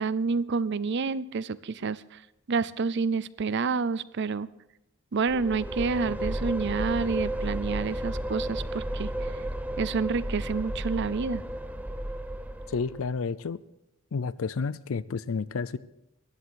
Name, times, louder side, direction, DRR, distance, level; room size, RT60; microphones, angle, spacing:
voice 1, 0.0-2.2 2.5-4.5 5.1-9.3 9.8-11.4, right 4 dB, 55° right, 19 dB, 0.5 m, -29 dB
sound 1, 5.3-13.1, right 1 dB, 5° right, 0.6 m, -33 dB
voice 2, 12.7-13.6 14.1-15.8, left 5 dB, 75° left, 17 dB, 0.5 m, -30 dB
14.5 x 11.0 x 6.4 m, 0.88 s
head